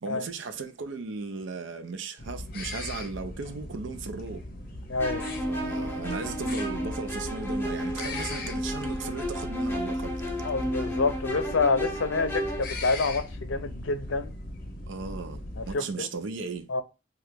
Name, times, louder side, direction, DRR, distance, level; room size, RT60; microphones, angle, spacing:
voice 1, 0.0-4.4 5.5-10.1 14.9-16.6, right 4 dB, 75° right, 0.5 m, -36 dB
sound 1, 2.2-15.7, left 2 dB, 50° left, 0.7 m, -39 dB
voice 2, 4.9-5.2 10.4-14.4 15.6-16.1 16.7-16.8, left 3 dB, 85° left, 0.6 m, -28 dB
sound 2, 5.0-12.6, equal, 10° left, 0.6 m, -32 dB
2.9 x 2.3 x 3.3 m
head